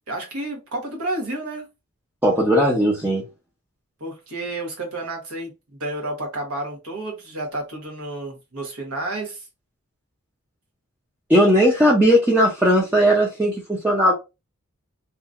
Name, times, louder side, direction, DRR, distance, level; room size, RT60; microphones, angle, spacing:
voice 1, 0.1-1.7 4.0-5.5 5.8-9.4, right 2 dB, 80° right, 1.1 m, -30 dB
voice 2, 2.2-3.2 11.3-14.1, equal, 10° right, 0.5 m, -17 dB
2.8 x 2.5 x 2.4 m
head